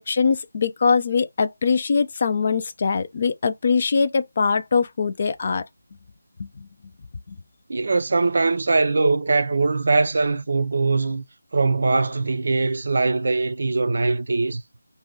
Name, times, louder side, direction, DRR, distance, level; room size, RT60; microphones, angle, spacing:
voice 1, 0.0-5.6 6.4-6.7, left 5 dB, 40° left, 0.4 m, -22 dB
voice 2, 7.7-11.2 11.5-14.6, right 3 dB, 55° right, 0.4 m, -21 dB
2.6 x 2.2 x 3.4 m
figure-of-eight pair, 165°, 0 cm